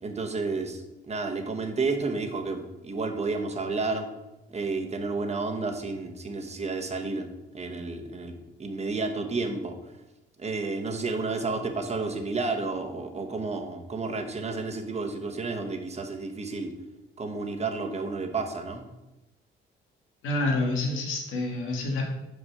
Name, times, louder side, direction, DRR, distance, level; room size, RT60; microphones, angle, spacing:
voice 1, 0.0-4.1 4.5-7.3 7.5-9.7 10.4-16.7 17.2-18.8, right 3 dB, 35° right, 4 dB, 1.2 m, -31 dB
voice 2, 20.2-22.0, left 2 dB, 90° left, 0 dB, 1.8 m, -28 dB
6.2 x 5.3 x 5.4 m, 0.99 s
cardioid pair, 90°, 20 cm